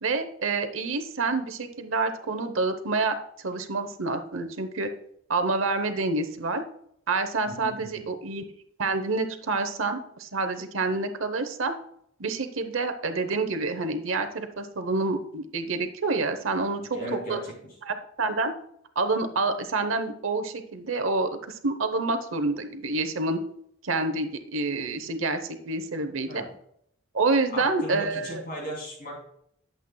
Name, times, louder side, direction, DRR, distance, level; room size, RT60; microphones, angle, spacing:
voice 1, 0.0-3.2 3.4-4.9 5.3-6.6 7.1-8.4 8.8-11.7 12.2-17.4 17.8-18.5 19.0-23.4 23.8-26.4 27.1-28.4, right 3 dB, 80° right, 8 dB, 0.9 m, -28 dB
voice 2, 7.5-8.1 16.9-17.5 26.3-26.5 27.5-29.4, equal, 40° left, -2 dB, 3.1 m, -37 dB
11.5 x 7.9 x 2.3 m, 0.69 s
head